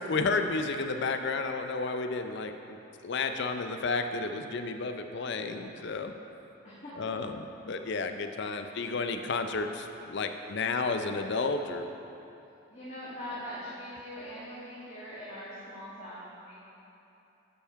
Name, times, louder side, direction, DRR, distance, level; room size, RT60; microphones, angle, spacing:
voice 1, 0.0-2.8 3.0-6.1 7.0-11.9, left 3 dB, 55° left, 7 dB, 0.5 m, -32 dB
voice 2, 12.7-16.6, equal, 30° left, -12 dB, 1.8 m, -42 dB
11.5 x 5.6 x 4.6 m, 2.9 s
head